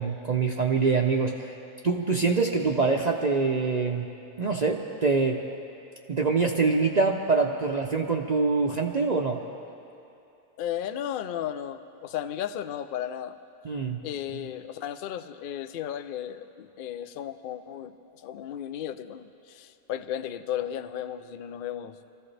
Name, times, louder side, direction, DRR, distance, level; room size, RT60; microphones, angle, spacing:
voice 1, 0.0-1.6 1.8-4.1 4.4-5.4 6.1-9.4 13.6-14.0, right 4 dB, 45° right, 1 dB, 0.5 m, -25 dB
voice 2, 10.6-13.4 14.0-22.0, left 10 dB, 75° left, 11 dB, 0.5 m, -34 dB
23.5 x 14.5 x 3.3 m, 2.7 s
omnidirectional pair, 1.5 m